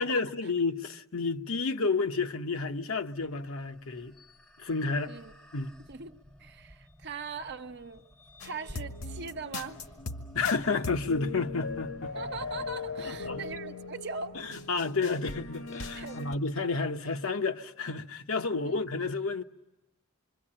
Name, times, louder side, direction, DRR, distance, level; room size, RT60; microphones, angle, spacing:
voice 1, 0.0-4.2 4.6-5.1 5.5-5.7 10.3-12.2 13.0-13.4 14.3-19.4, left 4 dB, 70° left, 0.9 m, -31 dB
sound 1, 3.0-13.6, left 1 dB, 5° left, 0.8 m, -52 dB
voice 2, 5.0-5.3 5.9-8.0 8.4-9.8 12.1-14.5 16.0-16.3 18.5-18.9, right 4 dB, 55° right, 0.9 m, -41 dB
sound 2, 8.4-16.4, left 3 dB, 85° left, 1.9 m, -39 dB
26.5 x 24.0 x 8.8 m
head